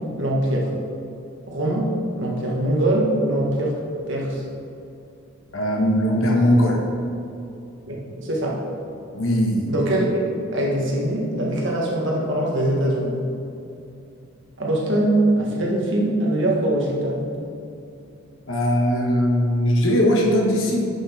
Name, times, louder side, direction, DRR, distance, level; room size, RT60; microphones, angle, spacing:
voice 1, 0.2-0.7 1.5-1.9 2.2-3.8 4.1-4.4 7.9-8.6 9.7-13.2 14.6-17.3, right 1 dB, 60° right, -2 dB, 1.6 m, -22 dB
voice 2, 5.5-6.8 9.1-9.7 18.5-20.9, equal, 70° left, -1 dB, 1.6 m, -19 dB
10.5 x 6.1 x 3.6 m, 2.7 s
head